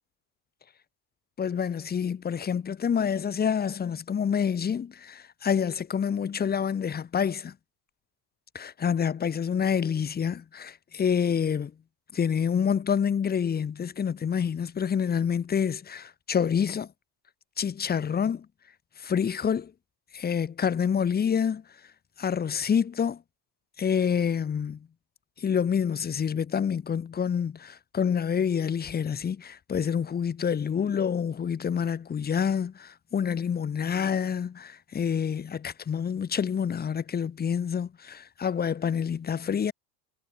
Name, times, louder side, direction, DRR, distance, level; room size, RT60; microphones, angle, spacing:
voice 1, 1.4-7.5 8.5-11.7 12.1-16.9 17.6-18.5 19.0-19.7 20.1-21.6 22.2-23.2 23.8-24.8 25.4-39.7, left 7 dB, 20° left, 7.8 m, -27 dB
supercardioid pair, 165°, 49 cm